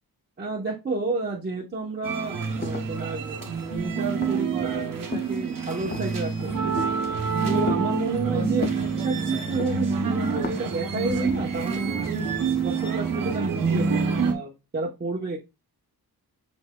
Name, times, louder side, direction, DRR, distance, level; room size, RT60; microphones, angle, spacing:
voice 1, 0.4-6.7 7.5-12.3 12.6-14.0 14.3-15.4, right 3 dB, 25° right, -2 dB, 0.9 m, -31 dB
sound 1, 2.0-14.3, right 5 dB, 60° right, 1.0 m, -27 dB
sound 2, 2.2-2.3 2.6-3.7 4.2-4.6 5.1-5.4 5.9-6.2 6.8-7.1 7.6-7.9 8.6-9.2 9.6-9.9 10.3-10.8, left 6 dB, 30° left, 0.4 m, -34 dB
5.9 x 4.0 x 2.2 m, 0.24 s
wide cardioid pair, 130°, 37 cm